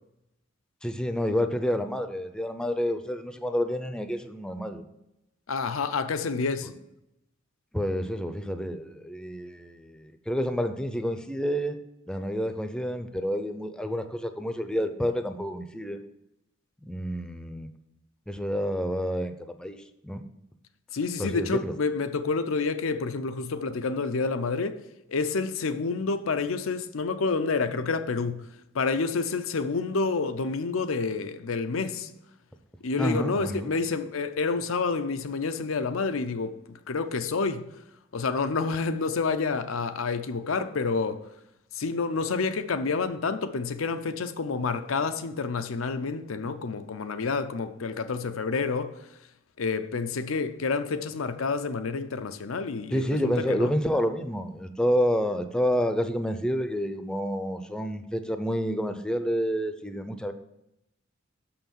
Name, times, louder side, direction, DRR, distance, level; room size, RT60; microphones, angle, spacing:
voice 1, 0.8-4.8 7.7-11.8 12.1-16.0 16.9-17.7 18.3-19.8 20.0-20.3 21.2-21.7 33.0-33.7 52.9-60.3, equal, 5° left, 0.5 m, -29 dB
voice 2, 5.5-6.7 20.9-24.8 25.1-28.5 28.7-32.1 32.8-37.7 38.1-41.2 41.7-49.1 49.6-53.7, left 4 dB, 90° left, 0.6 m, -29 dB
6.4 x 5.8 x 7.1 m
head